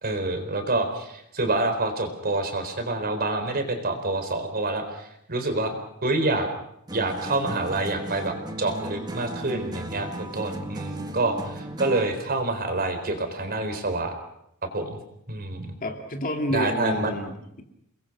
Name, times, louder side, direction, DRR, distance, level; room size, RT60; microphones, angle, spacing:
voice 1, 0.0-5.7 6.0-6.5 6.9-14.1 14.7-15.0 15.3-15.7 16.5-17.1, right 2 dB, 45° right, 6 dB, 4.1 m, -27 dB
sound 1, 6.9-12.2, right 1 dB, 20° right, 1.9 m, -35 dB
voice 2, 15.8-17.6, left 1 dB, 40° left, 4 dB, 2.6 m, -29 dB
29.5 x 21.0 x 6.1 m, 0.78 s
head